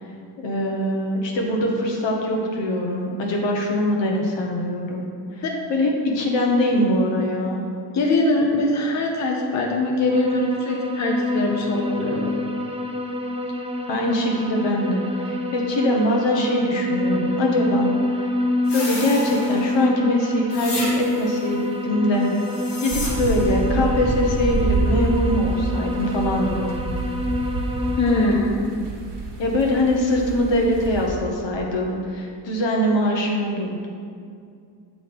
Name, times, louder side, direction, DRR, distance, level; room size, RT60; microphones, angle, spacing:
voice 1, 0.4-5.1 5.4-5.5 5.7-7.6 13.9-17.9 18.7-22.3 22.8-26.7 29.4-33.9, left 1 dB, 85° left, 0 dB, 1.2 m, -23 dB
voice 2, 7.9-12.4 28.0-28.7, left 2 dB, 40° left, 1 dB, 0.8 m, -22 dB
sound 1, 10.1-28.4, left 1 dB, 15° right, 0.5 m, -27 dB
sound 2, 18.7-19.9 20.5-21.4 22.3-23.6, left 2 dB, 65° left, 1.6 m, -33 dB
sound 3, 22.9-31.1, right 2 dB, 70° right, 1.3 m, -27 dB
7.0 x 3.8 x 5.2 m, 2.3 s
wide cardioid pair, 125°, 43 cm